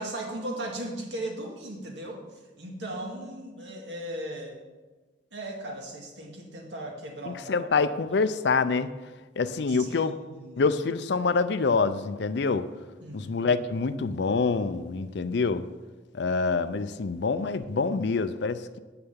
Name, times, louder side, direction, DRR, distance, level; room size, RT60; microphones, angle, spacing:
voice 1, 0.0-4.6 5.3-7.7 9.7-10.6 13.0-13.4, right 1 dB, 65° right, 1 dB, 2.0 m, -37 dB
voice 2, 7.3-8.9 9.4-10.2 10.6-12.7 13.1-15.7 16.1-18.8, left 4 dB, 60° left, 10 dB, 0.5 m, -26 dB
7.9 x 6.7 x 7.3 m, 1.2 s
head